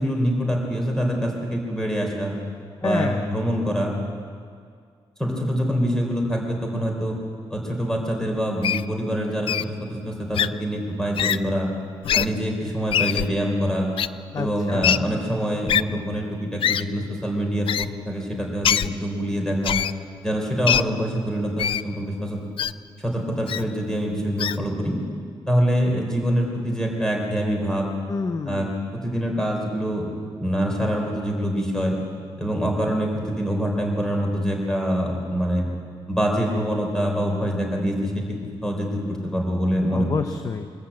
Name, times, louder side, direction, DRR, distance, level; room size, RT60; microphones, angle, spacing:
voice 1, 0.0-2.3 2.8-3.9 5.2-7.2 7.5-11.7 12.1-13.9 14.3-19.8 20.2-22.4 23.0-25.0 25.5-27.9 28.5-30.1 30.4-31.9 32.4-35.6 36.1-38.2 38.6-40.1, equal, 5° left, 0 dB, 4.1 m, -25 dB
voice 2, 2.8-3.3 14.3-14.9 28.1-28.7 39.9-40.7, left 4 dB, 40° left, 8 dB, 0.8 m, -28 dB
Wild animals, 8.6-8.8 9.5-9.6 10.3-10.5 11.1-11.4 12.0-12.3 12.9-13.3 14.0-14.1 14.8-15.0 15.7-15.8 16.6-16.8 17.7-17.9 18.6-18.9 19.6-19.9 20.7-20.8 21.6-21.8 22.6-22.7 23.5-23.6 24.4-24.6, left 9 dB, 65° left, 0.4 m, -22 dB
23.5 x 14.0 x 8.5 m, 2.1 s
wide cardioid pair, 145°, 10 cm